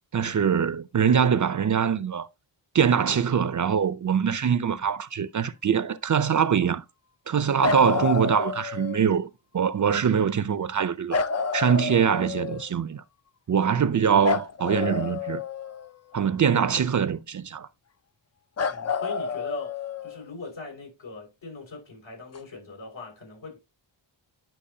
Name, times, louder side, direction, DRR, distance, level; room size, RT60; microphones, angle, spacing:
voice 1, 0.1-2.3 2.7-6.8 7.3-11.2 11.5-13.0 13.5-15.4 16.1-17.7, right 7 dB, 40° right, 0.6 m, -23 dB
sound 1, 7.6-9.1 11.1-12.7 14.2-16.1 18.6-20.3 22.3-22.4, left 5 dB, 35° left, 0.5 m, -29 dB
voice 2, 18.6-23.6, left 3 dB, 80° left, 5.6 m, -40 dB
10.0 x 5.9 x 2.8 m
cardioid pair, 70°, 46 cm